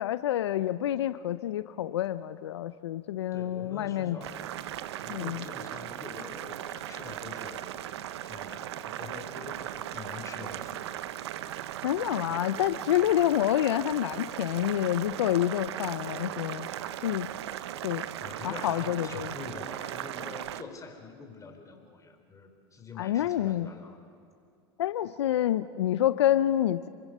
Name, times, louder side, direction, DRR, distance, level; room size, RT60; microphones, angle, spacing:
voice 1, 0.0-4.2 5.1-5.4 11.8-16.7 17.0-17.3 17.8-18.1 18.4-19.3 23.0-23.7 24.8-26.9, left 12 dB, 85° left, 13 dB, 0.6 m, -28 dB
voice 2, 3.3-7.6 8.2-10.8 18.2-24.0, left 4 dB, 25° left, 4 dB, 4.6 m, -45 dB
Boiling, 4.2-20.6, right 12 dB, 80° right, 0.9 m, -38 dB
28.5 x 23.0 x 6.7 m, 2.5 s
hypercardioid pair, 90°, 14 cm